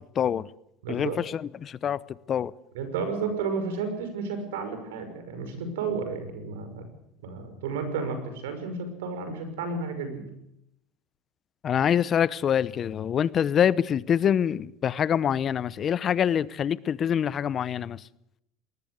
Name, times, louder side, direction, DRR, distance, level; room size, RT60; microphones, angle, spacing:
voice 1, 0.2-0.5 0.9-2.0 2.3-2.5 11.6-18.0, left 8 dB, 40° left, 0.8 m, -25 dB
voice 2, 0.8-1.2 2.7-6.9 7.2-10.2, right 4 dB, 85° right, 5.9 m, -32 dB
21.5 x 19.5 x 8.1 m
hypercardioid pair, 85°, 0 cm